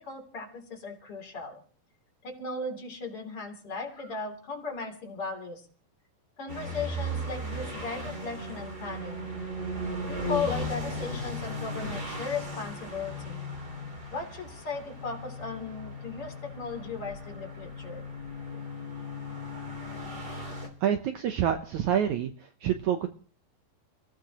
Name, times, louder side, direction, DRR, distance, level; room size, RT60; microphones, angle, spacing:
voice 1, 0.0-1.6 2.2-5.7 6.4-9.2 10.1-13.4 14.1-18.1, left 4 dB, 40° left, 2 dB, 4.0 m, -36 dB
sound 1, 6.5-20.7, equal, 25° right, 3.8 m, -37 dB
voice 2, 20.8-22.3 22.6-23.1, right 9 dB, 70° right, 7 dB, 1.9 m, -27 dB
30.0 x 16.0 x 3.0 m, 0.39 s
omnidirectional pair, 4.1 m